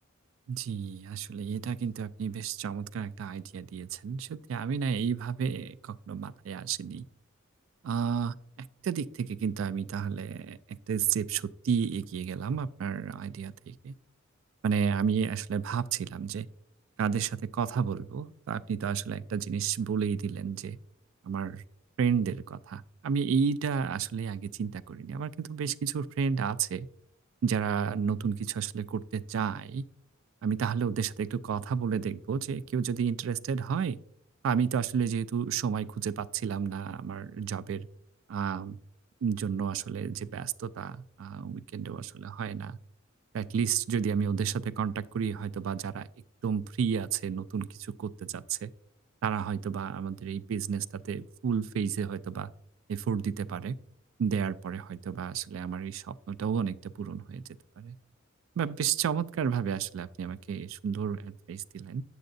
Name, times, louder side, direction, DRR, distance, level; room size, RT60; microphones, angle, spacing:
voice 1, 0.5-7.1 7.8-13.9 14.6-16.5 17.0-20.8 21.2-21.6 22.0-26.9 27.4-29.8 30.4-34.0 34.4-37.9 38.3-38.8 39.2-42.8 43.3-46.1 46.4-48.7 49.2-52.5 52.9-53.8 54.2-57.4 57.8-58.0 58.6-62.0, right 7 dB, 70° right, 0.3 m, -31 dB
8.0 x 7.6 x 2.6 m
head